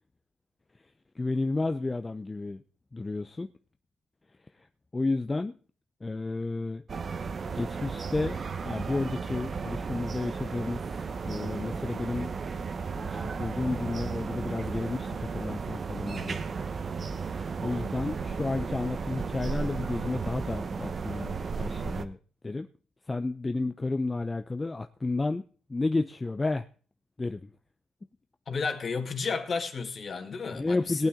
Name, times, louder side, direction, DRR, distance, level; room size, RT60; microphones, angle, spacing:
voice 1, 1.2-2.6 2.9-3.5 4.9-5.6 6.0-6.8 7.5-8.4 8.6-10.9 11.2-12.3 12.9-16.4 16.9-17.0 17.6-22.2 22.4-22.7 23.1-25.4 25.7-26.7 27.2-27.5 30.5-31.1, left 3 dB, 20° left, 0.7 m, -31 dB
sound 1, 6.9-22.0, right 5 dB, 40° right, 1.1 m, -34 dB
voice 2, 28.5-31.1, left 5 dB, 45° left, 2.2 m, -32 dB
18.5 x 8.9 x 3.7 m
cardioid pair, 90°, 0 cm